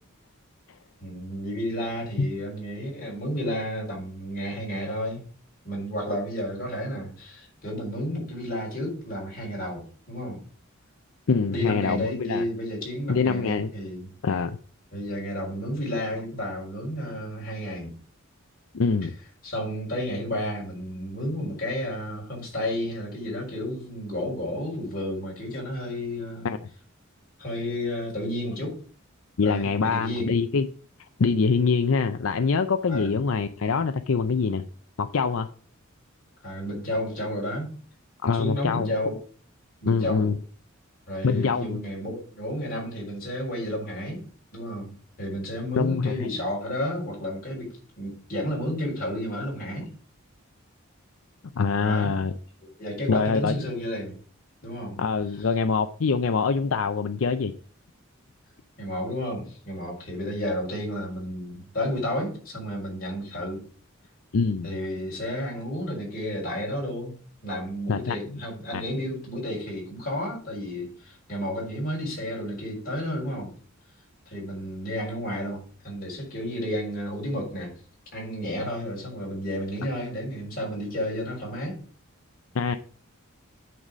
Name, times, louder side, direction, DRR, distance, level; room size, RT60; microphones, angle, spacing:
voice 1, 1.0-5.2 5.6-10.4 11.5-14.1 14.9-17.9 19.4-26.5 27.4-28.8 29.4-30.4 32.9-33.2 36.4-37.7 38.4-39.2 39.8-40.3 41.1-44.2 44.5-47.7 48.0-49.9 51.8-52.2 52.8-54.1 54.6-55.0 55.4-55.5 58.8-63.6 64.6-67.1 67.4-73.5 74.3-77.7 78.1-81.8, equal, 45° left, 4.5 m, -31 dB
voice 2, 11.3-12.4 13.1-13.7 14.2-14.6 18.7-19.1 26.4-26.6 29.4-30.7 31.2-34.6 35.0-35.5 38.2-38.9 39.9-40.4 41.2-41.8 45.8-46.3 51.6-52.3 53.1-53.5 55.0-57.5 64.3-64.7 67.9-68.4 68.7-68.8 82.5-82.8, left 5 dB, 75° left, 0.5 m, -24 dB
9.3 x 4.1 x 6.1 m
head